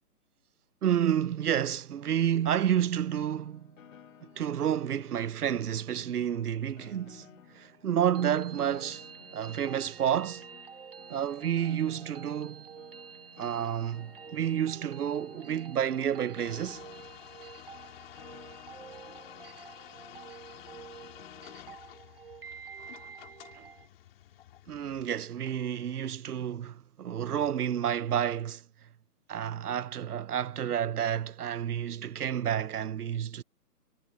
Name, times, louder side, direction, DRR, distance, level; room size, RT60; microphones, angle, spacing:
voice 1, 0.8-3.7 4.4-7.3 7.5-9.1 9.3-10.5 11.1-12.7 13.4-16.8 24.7-28.6 29.3-33.4, right 9 dB, 70° right, 0.9 m, -30 dB
Piano, 2.6-21.7, left 8 dB, 55° left, 2.4 m, -56 dB
sound 1, 7.9-23.9, right 6 dB, 40° right, 0.5 m, -49 dB
sound 2, 16.4-25.1, left 13 dB, 35° left, 5.3 m, -51 dB
hypercardioid pair, 160°, 47 cm